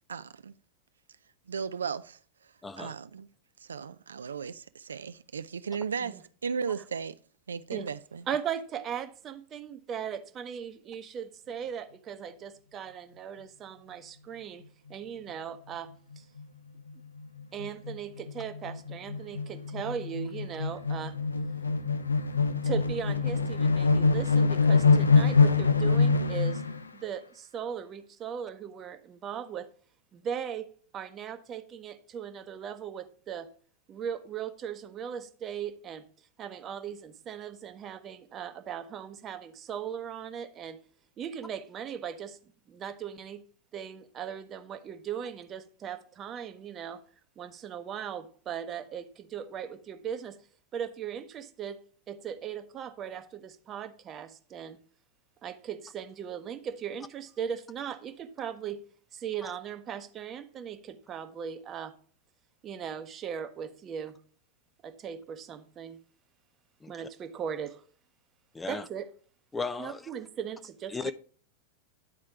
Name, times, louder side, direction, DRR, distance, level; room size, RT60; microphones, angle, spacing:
voice 1, 0.1-0.5 1.5-2.2 2.8-3.3 3.6-6.2 6.4-7.1 7.5-8.2, right 6 dB, 70° right, 0.3 m, -35 dB
voice 2, 2.6-2.9 66.8-66.9 68.5-68.9 69.5-70.0 70.9-71.1, left 4 dB, 10° left, 0.4 m, -35 dB
voice 3, 8.3-16.3 17.5-21.2 21.8-21.9 22.6-26.6 26.9-29.7 30.1-30.7 30.9-33.5 33.9-36.1 36.4-40.8 41.2-42.4 42.7-43.4 43.7-47.0 47.4-50.4 50.7-51.8 52.1-54.8 55.4-58.8 59.1-61.9 62.6-64.2 64.8-66.0 66.9-67.8 68.7-69.1 69.8-71.1, right 8 dB, 30° right, 0.8 m, -38 dB
sound 1, 16.1-16.4 16.8-16.9 17.2-26.8, left 4 dB, 75° left, 0.5 m, -25 dB
9.8 x 4.3 x 4.8 m
figure-of-eight pair, 90°, 0 cm